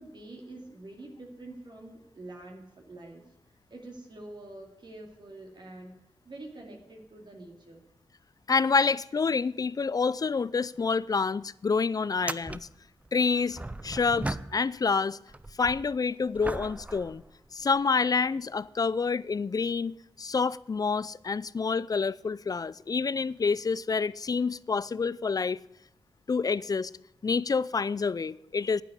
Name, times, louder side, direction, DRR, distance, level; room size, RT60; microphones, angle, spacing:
voice 1, 0.0-3.2 3.7-5.9 6.2-7.8, right 2 dB, 50° right, 2.6 m, -46 dB
voice 2, 8.5-12.7 13.1-13.6 13.8-15.2 15.6-17.2 17.5-25.6 26.3-26.9 27.2-28.8, left 5 dB, 40° left, 0.4 m, -28 dB
sound 1, 10.7-10.9 11.2-11.3 12.1-14.9 15.3-18.0 18.6-18.7 22.9-23.0 24.4-24.5, right 2 dB, 15° right, 0.5 m, -39 dB
9.7 x 9.1 x 8.2 m
cardioid pair, 65°, 10 cm